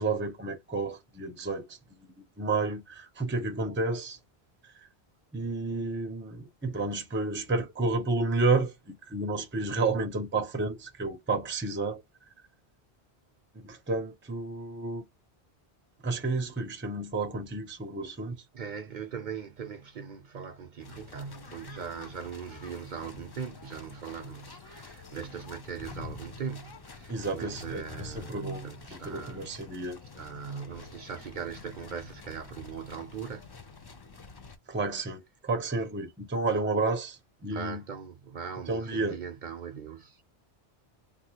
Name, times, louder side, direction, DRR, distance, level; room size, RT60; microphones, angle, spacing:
voice 1, 0.0-1.8 2.4-4.2 5.3-12.0 13.5-15.0 16.0-18.4 27.1-30.0 34.7-37.8 38.7-39.2, right 3 dB, 15° right, 0.5 m, -31 dB
voice 2, 18.5-29.5 30.1-33.5 37.5-40.2, right 6 dB, 55° right, 0.6 m, -40 dB
sound 1, 20.8-34.6, left 4 dB, 40° left, 0.3 m, -47 dB
3.4 x 2.3 x 2.8 m
omnidirectional pair, 1.0 m